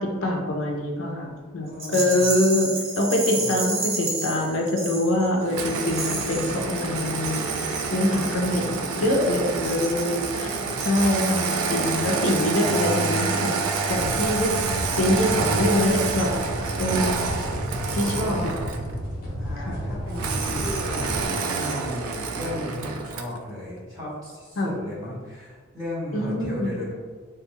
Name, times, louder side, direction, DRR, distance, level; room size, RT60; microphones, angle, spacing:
voice 1, 0.0-7.5 7.9-8.6 8.9-13.5 13.9-14.6 14.9-16.3 16.8-17.2 17.9-18.5 19.7-19.8 24.6-24.7 26.1-26.7, left 1 dB, 70° left, 1 dB, 0.5 m, -24 dB
voice 2, 1.6-2.3 3.3-3.6 8.3-9.4 10.2-11.0 17.8-18.7 19.4-26.9, left 1 dB, 15° right, -9 dB, 1.3 m, -36 dB
Rattle, 1.8-5.4 5.9-6.6, right 2 dB, 60° right, 0.8 m, -30 dB
Engine starting, 5.5-18.9 20.2-23.4, right 4 dB, 90° right, 0.3 m, -28 dB
sound 1, 6.9-21.3, equal, 45° left, 0.9 m, -34 dB
3.4 x 2.3 x 3.0 m, 1.5 s
head